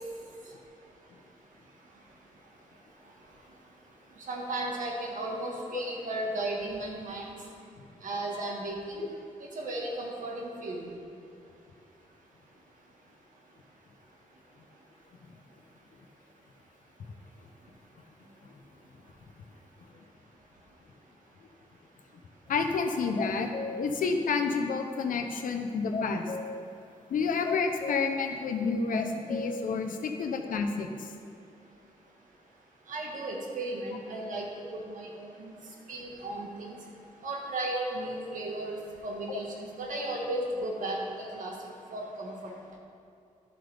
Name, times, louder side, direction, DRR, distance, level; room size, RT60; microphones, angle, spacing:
voice 1, 4.3-7.3 8.0-9.0 9.5-10.9 32.9-35.5 35.9-36.8 37.2-41.6 41.9-42.5, right 1 dB, 75° right, -1 dB, 1.7 m, -35 dB
voice 2, 22.5-26.2 27.1-31.1 39.3-39.4, left 4 dB, 90° left, 5 dB, 0.8 m, -30 dB
sound 1, 22.8-23.9 24.3-24.4 25.9-26.6 27.4-28.3 28.5-28.6 28.9-29.8 30.0-30.2, left 4 dB, 40° left, 0.5 m, -36 dB
12.0 x 7.7 x 3.5 m, 2.6 s
wide cardioid pair, 160°, 14 cm